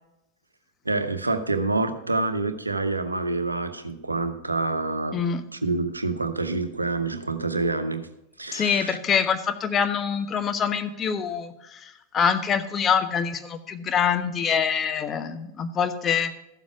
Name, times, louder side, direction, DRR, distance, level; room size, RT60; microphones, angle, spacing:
voice 1, 0.8-5.2 5.5-8.1 8.4-9.0, right 3 dB, 80° right, 9 dB, 0.9 m, -27 dB
voice 2, 8.5-16.3, left 7 dB, 25° left, 9 dB, 0.9 m, -25 dB
14.0 x 7.3 x 4.9 m, 0.88 s
figure-of-eight pair, 90°, 0 cm